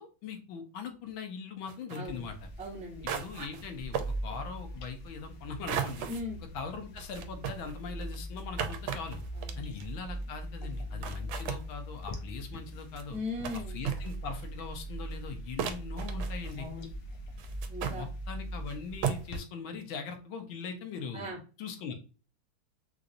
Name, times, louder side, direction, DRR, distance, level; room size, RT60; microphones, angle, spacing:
voice 1, 0.0-2.3 3.0-6.1 6.5-9.2 9.6-13.2 13.7-16.7 17.9-21.3 21.6-21.9, left 5 dB, 80° left, 5 dB, 1.6 m, -41 dB
sound 1, 1.7-2.0 2.6-2.7 3.1-3.7 3.9-4.1 5.7-6.2 7.0-9.9 10.7-10.8 11.0-11.6 12.7-13.0 13.4-13.6 13.8-14.5 15.1-15.2 15.6-16.7 17.4-18.0 18.7-18.8 19.0-19.4, right 8 dB, 85° right, 1.4 m, -35 dB
voice 2, 1.9-2.3 2.6-3.1 6.1-6.4 9.3-9.7 10.6-11.3 13.1-13.8 16.6-16.9 17.7-18.1 21.1-21.4, left 2 dB, 5° right, -3 dB, 0.9 m, -39 dB
sound 2, 2.0-19.4, right 1 dB, 65° left, 1.1 m, -41 dB
4.5 x 2.5 x 2.6 m, 0.35 s
omnidirectional pair, 2.1 m